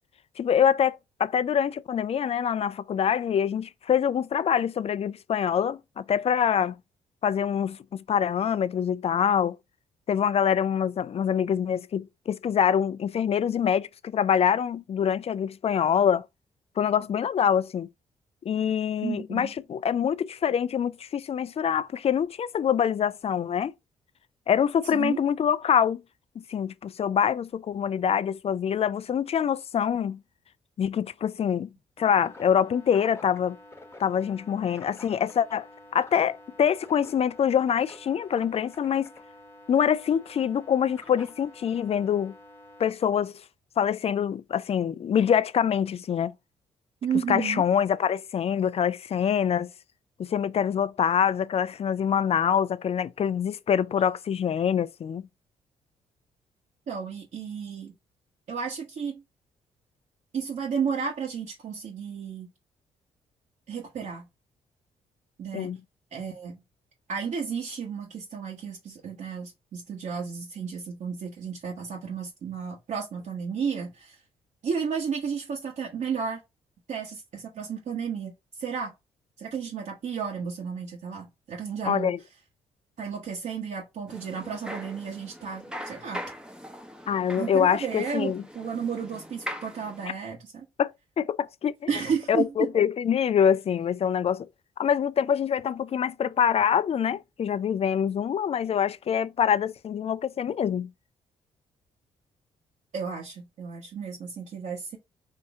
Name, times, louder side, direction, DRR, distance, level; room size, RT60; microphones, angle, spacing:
voice 1, 0.4-6.7 7.2-9.6 10.1-16.2 16.8-17.9 18.5-23.7 24.5-26.0 26.4-30.2 30.8-31.7 32.0-33.6 34.0-35.7 35.9-39.1 39.7-42.3 42.8-43.4 43.8-46.3 47.3-49.7 50.2-55.3 65.5-65.8 81.9-82.2 87.1-88.4 90.8-90.9 91.2-91.7 92.3-94.5 94.8-100.9, left 8 dB, 45° left, 0.5 m, -25 dB
voice 2, 19.0-19.5 24.9-25.2 47.0-47.6 56.9-57.9 58.5-59.2 60.3-62.5 63.7-64.3 65.4-65.7 66.1-66.6 67.1-74.2 74.6-76.4 76.9-78.9 79.4-82.1 83.0-86.3 87.4-90.7 91.9-92.7 102.9-105.0, right 6 dB, 60° right, 1.4 m, -33 dB
sound 1, 32.0-42.9, left 1 dB, 20° left, 1.4 m, -49 dB
sound 2, 84.1-90.1, equal, 5° right, 1.2 m, -41 dB
4.5 x 2.7 x 3.6 m
supercardioid pair, 50°, 14 cm